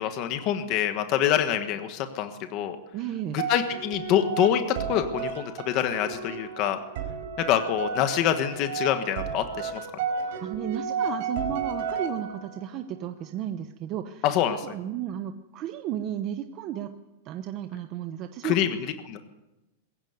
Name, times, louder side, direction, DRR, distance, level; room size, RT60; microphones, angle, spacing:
voice 1, 0.0-2.8 3.3-6.8 7.4-9.8 14.2-14.8 18.4-18.7 19.0-19.2, left 10 dB, 30° left, 8 dB, 1.3 m, -26 dB
voice 2, 2.9-3.4 10.1-14.2 14.5-16.9 17.2-18.6, right 10 dB, 25° right, 7 dB, 0.9 m, -34 dB
sound 1, 3.4-12.7, right 5 dB, 50° right, 4.3 m, -33 dB
21.5 x 16.0 x 9.5 m, 1.0 s
supercardioid pair, 180°, 0 cm